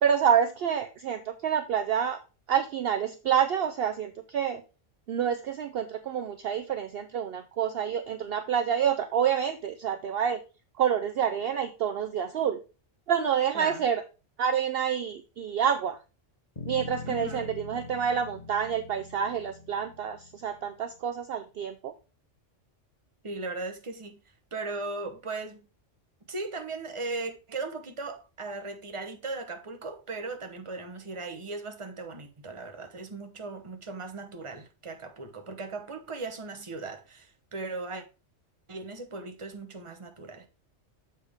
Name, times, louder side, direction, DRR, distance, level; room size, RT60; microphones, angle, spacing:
voice 1, 0.0-2.2 2.5-4.6 5.1-10.4 10.8-12.6 13.1-14.0 14.4-16.0 16.7-21.9, right 8 dB, 60° right, 0.7 m, -28 dB
Bass guitar, 16.6-20.9, left 4 dB, 35° left, 1.3 m, -43 dB
voice 2, 17.1-17.5 23.2-24.2 24.5-25.6 26.3-38.0 38.7-40.5, right 3 dB, 25° right, 1.0 m, -37 dB
7.2 x 5.7 x 3.5 m
omnidirectional pair, 1.3 m